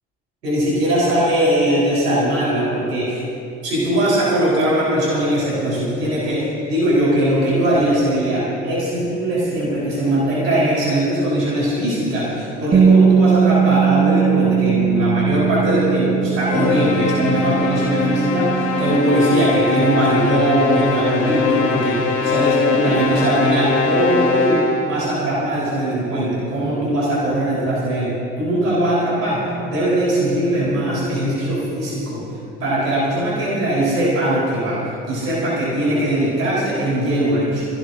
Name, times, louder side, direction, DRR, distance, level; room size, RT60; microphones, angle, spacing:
voice 1, 0.4-3.2 3.6-32.2 32.6-37.7, right 1 dB, 80° right, -8 dB, 4.4 m, -20 dB
Bass guitar, 12.7-19.0, right 7 dB, 20° right, 0.9 m, -19 dB
sound 1, 16.5-25.0, left 4 dB, 60° left, 2.1 m, -21 dB
24.0 x 16.5 x 2.7 m, 2.7 s
figure-of-eight pair, 45°, 48 cm